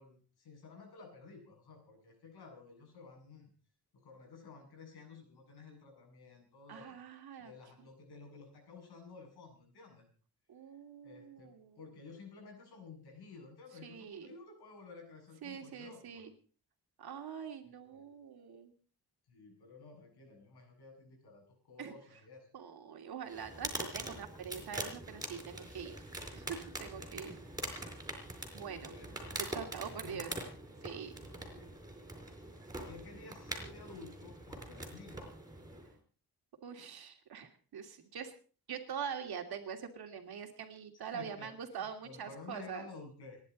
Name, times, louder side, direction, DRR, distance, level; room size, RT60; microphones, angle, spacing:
voice 1, 0.0-3.5 3.9-7.0 7.4-10.1 11.0-16.0 17.9-18.0 19.3-22.5 25.7-25.8 27.0-27.3 28.4-29.4 29.8-30.5 31.2-31.7 32.9-35.3 41.1-43.4, left 4 dB, 70° left, 2 dB, 8.0 m, -53 dB
voice 2, 6.7-7.5 10.5-11.8 13.8-14.3 15.4-16.3 17.0-18.7 21.8-21.9 22.5-27.3 28.5-28.9 29.4-30.3 30.8-31.1 36.6-38.3 38.7-42.9, right 7 dB, 65° right, 5 dB, 2.9 m, -44 dB
sound 1, 23.3-35.9, right 1 dB, 10° right, 4.4 m, -44 dB
29.0 x 11.0 x 4.2 m, 0.41 s
wide cardioid pair, 170°, 40 cm